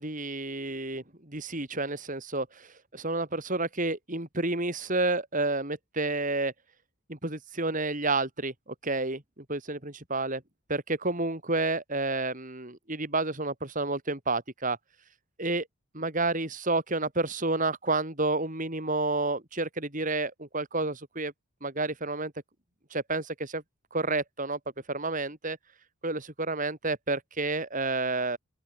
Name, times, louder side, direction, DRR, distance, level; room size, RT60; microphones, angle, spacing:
voice 1, 0.0-6.5 7.1-8.5 8.8-10.4 10.7-14.8 15.4-15.7 15.9-21.3 21.6-22.3 22.9-23.6 23.9-24.6 24.9-25.6 26.0-28.4, right 2 dB, 35° right, 3.5 m, -30 dB
open air
head